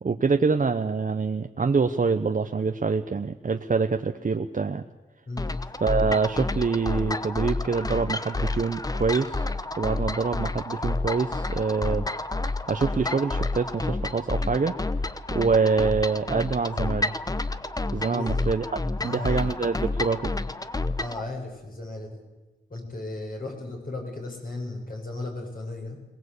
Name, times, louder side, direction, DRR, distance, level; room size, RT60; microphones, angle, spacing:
voice 1, 0.0-4.8 5.8-9.5 9.8-12.1 12.4-17.1 17.9-18.6 19.0-20.3, right 4 dB, 50° right, 6 dB, 0.9 m, -25 dB
sound 1, 5.4-21.2, left 2 dB, 20° left, 0.9 m, -29 dB
voice 2, 18.1-18.4 19.0-19.5 21.0-22.2 22.7-26.0, left 2 dB, 50° left, 0 dB, 7.2 m, -35 dB
22.5 x 20.0 x 8.4 m, 1.2 s
wide cardioid pair, 100°, 18 cm